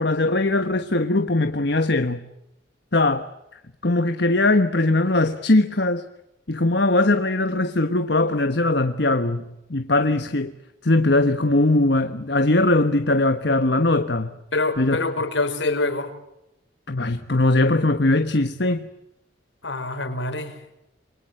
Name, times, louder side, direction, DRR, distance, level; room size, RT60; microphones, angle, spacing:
voice 1, 0.0-2.2 2.9-3.3 3.8-6.0 6.5-9.4 9.7-10.5 10.8-14.3 14.8-15.0 16.9-18.9, left 2 dB, 60° left, 1.3 m, -20 dB
voice 2, 14.5-16.1 19.6-20.6, left 2 dB, 75° left, 4.7 m, -25 dB
28.0 x 23.5 x 7.9 m
head